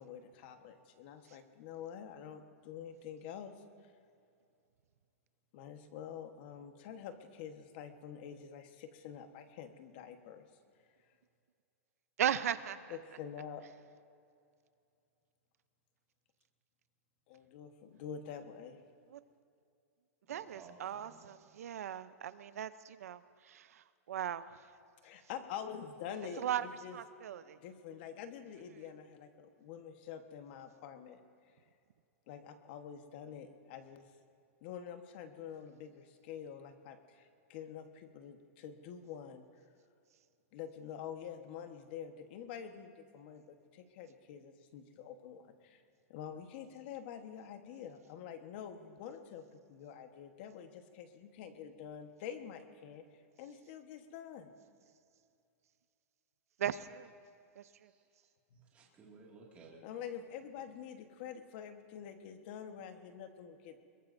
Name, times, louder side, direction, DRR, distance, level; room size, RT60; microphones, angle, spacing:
voice 1, 0.0-3.5 5.5-10.5 12.9-13.6 17.3-18.8 25.0-27.0 27.6-31.2 32.3-34.0 34.6-39.4 40.5-45.8 46.1-49.4 49.7-53.0 53.4-54.5 58.5-58.6 59.8-63.8, left 8 dB, 45° left, 7 dB, 1.3 m, -47 dB
voice 2, 12.2-13.0 19.1-19.2 20.3-24.4 26.4-26.7 26.9-27.6 56.6-57.1 57.6-57.9, right 10 dB, 85° right, 14 dB, 0.7 m, -38 dB
voice 3, 20.3-21.3 57.8-58.3 58.6-59.8, right 4 dB, 15° right, -4 dB, 2.2 m, -58 dB
22.5 x 22.0 x 2.7 m, 2.4 s
supercardioid pair, 165°, 8 cm